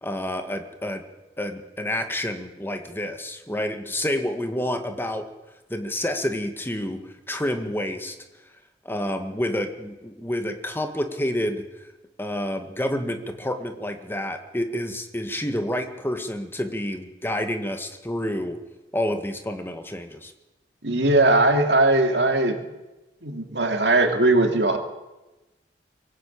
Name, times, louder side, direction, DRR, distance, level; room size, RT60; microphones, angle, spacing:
voice 1, 0.0-1.0 1.4-5.2 5.7-8.2 8.8-11.6 12.2-18.6 18.9-20.3, left 1 dB, 15° left, 6 dB, 2.0 m, -29 dB
voice 2, 20.8-22.7 23.2-24.8, right 2 dB, 70° right, 4 dB, 2.8 m, -19 dB
24.0 x 16.0 x 8.7 m, 1.1 s
head